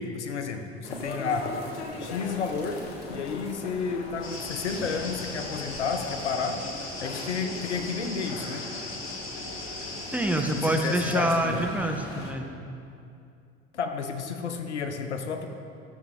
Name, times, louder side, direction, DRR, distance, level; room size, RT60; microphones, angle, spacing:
voice 1, 0.0-1.5 2.0-2.8 3.1-6.6 7.0-8.7 10.5-11.7 13.7-15.5, left 5 dB, 90° left, 7 dB, 0.8 m, -31 dB
sound 1, 0.8-12.3, left 2 dB, 75° left, 1.5 m, -39 dB
sound 2, 4.2-11.2, left 2 dB, 40° left, 2.5 m, -39 dB
voice 2, 10.1-12.5, right 1 dB, 5° right, 3 dB, 1.1 m, -26 dB
14.0 x 7.2 x 3.7 m, 2.5 s
hypercardioid pair, 70°, 33 cm